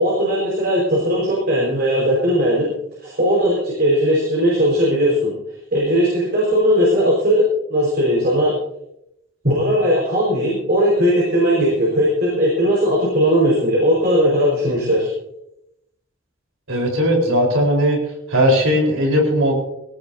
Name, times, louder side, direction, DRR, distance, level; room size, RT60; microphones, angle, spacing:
voice 1, 0.0-2.7 3.0-5.3 5.7-7.4 7.7-8.5 9.4-15.1, equal, 50° right, -5 dB, 4.9 m, -18 dB
voice 2, 16.7-18.0 18.3-19.5, equal, 75° right, 1 dB, 4.3 m, -17 dB
20.0 x 17.0 x 2.8 m, 0.80 s
head